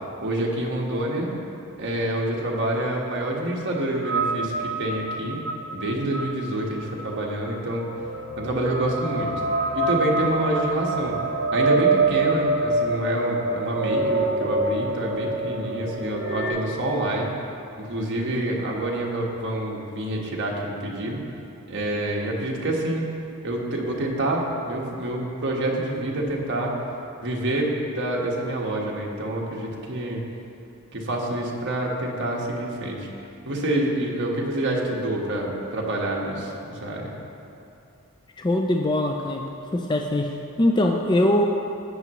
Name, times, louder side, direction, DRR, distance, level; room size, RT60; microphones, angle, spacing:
voice 1, 0.2-1.3 1.8-5.4 5.7-7.9 8.4-9.3 9.7-11.2 11.5-17.3 17.8-21.2 21.7-23.0 23.4-26.7 27.2-30.2 30.9-33.1 33.4-37.1, right 1 dB, 55° right, -2 dB, 1.5 m, -27 dB
sound 1, 4.0-16.5, right 3 dB, 80° right, 1.3 m, -26 dB
voice 2, 38.4-39.4 39.7-41.4, left 1 dB, 20° left, 2 dB, 0.4 m, -22 dB
13.5 x 9.1 x 3.1 m, 2.7 s
head